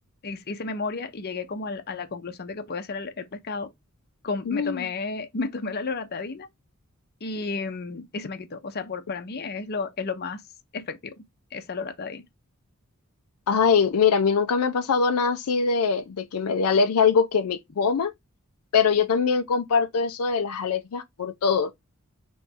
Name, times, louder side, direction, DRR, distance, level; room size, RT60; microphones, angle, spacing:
voice 1, 0.2-3.7 4.2-6.5 7.2-10.4 10.7-11.1 11.5-12.2, left 4 dB, 50° left, 0.7 m, -32 dB
voice 2, 4.5-4.9 13.5-18.1 18.7-21.7, left 5 dB, 85° left, 0.5 m, -22 dB
3.4 x 3.1 x 4.2 m
head